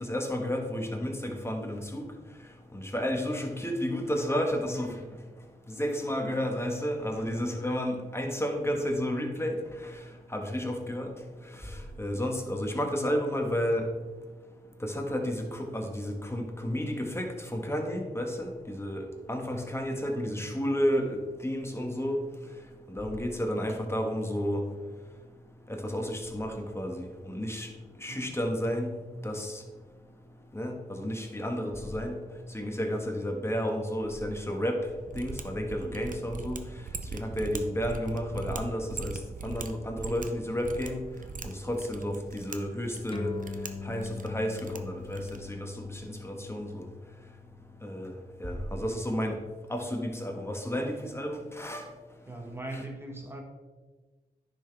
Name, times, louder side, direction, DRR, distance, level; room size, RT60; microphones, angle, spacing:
voice 1, 0.0-2.1 2.7-5.0 5.8-9.9 10.3-11.1 11.6-13.9 14.8-22.2 22.9-24.6 25.7-27.7 28.0-28.9 29.2-29.6 30.5-32.2 32.5-34.8 35.1-36.6 37.1-41.0 41.4-43.3 43.8-46.8 47.8-48.1 48.4-49.3 49.7-51.8 52.7-52.8, equal, 15° left, 2 dB, 1.6 m, -32 dB
Mechanisms, 35.0-45.5, right 4 dB, 55° right, 0.8 m, -41 dB
sound 1, 43.1-50.0, left 4 dB, 35° left, 0.9 m, -43 dB
voice 2, 52.3-53.4, right 2 dB, 15° right, 1 dB, 1.8 m, -39 dB
10.5 x 6.1 x 3.5 m, 1.3 s
cardioid pair, 60°, 16 cm